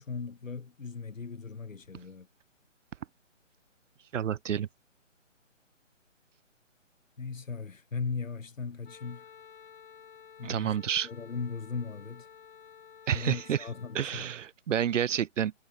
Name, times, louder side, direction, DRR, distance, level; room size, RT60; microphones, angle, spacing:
voice 1, 0.0-2.3 7.2-9.3 10.4-10.7 11.0-12.3 13.1-14.3, left 5 dB, 85° left, 2.9 m, -38 dB
voice 2, 4.1-4.7 10.4-11.1 13.1-13.7 13.9-15.5, right 9 dB, 70° right, 0.6 m, -29 dB
Wind instrument woodwind instrument, 8.8-14.0, left 7 dB, 45° left, 4.1 m, -52 dB
hypercardioid pair, 165°, 38 cm